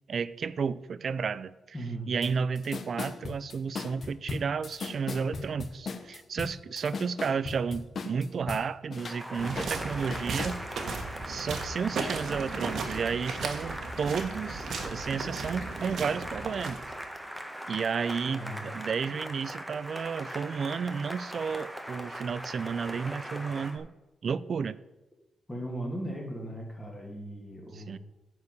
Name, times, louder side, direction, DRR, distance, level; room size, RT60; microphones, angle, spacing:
voice 1, 0.1-1.5 2.1-10.6 11.3-16.8 17.7-23.9 24.2-24.8 27.8-28.0, right 6 dB, 55° right, 17 dB, 0.4 m, -32 dB
voice 2, 1.7-2.1 18.3-18.7 25.5-28.0, right 1 dB, 15° left, -1 dB, 2.3 m, -37 dB
sound 1, 2.2-2.3 2.6-8.6 8.9-10.6, left 4 dB, 50° left, 0.9 m, -37 dB
Cheering / Applause, 9.0-23.8, equal, 5° right, 1.2 m, -40 dB
sound 2, 9.4-17.1, right 4 dB, 70° right, 1.5 m, -36 dB
9.5 x 4.8 x 6.8 m, 0.99 s
cardioid pair, 100°, 0 cm